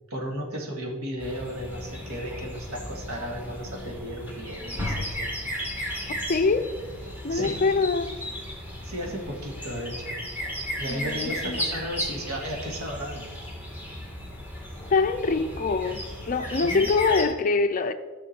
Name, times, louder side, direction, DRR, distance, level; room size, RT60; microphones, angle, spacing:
voice 1, 0.1-5.3 7.3-7.8 8.8-10.2 10.8-13.3 16.6-16.9, equal, 70° right, 2.0 m, -34 dB
sound 1, 1.2-17.2, equal, 10° right, 1.7 m, -35 dB
voice 2, 6.3-6.7 7.2-8.2 10.9-11.6 14.9-17.9, left 4 dB, 35° left, 0.5 m, -24 dB
12.5 x 6.3 x 4.4 m
head